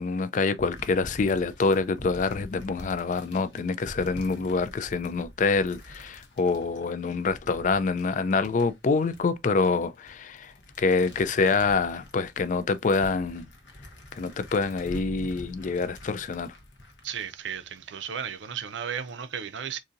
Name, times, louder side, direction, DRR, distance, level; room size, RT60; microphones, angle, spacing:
voice 1, 0.0-13.5 14.1-16.5, left 4 dB, 40° left, 0.3 m, -26 dB
sound 1, 0.6-18.2 18.7-19.1, left 1 dB, 70° left, 0.9 m, -46 dB
voice 2, 17.0-19.8, right 8 dB, 70° right, 0.5 m, -34 dB
4.0 x 2.6 x 2.5 m
head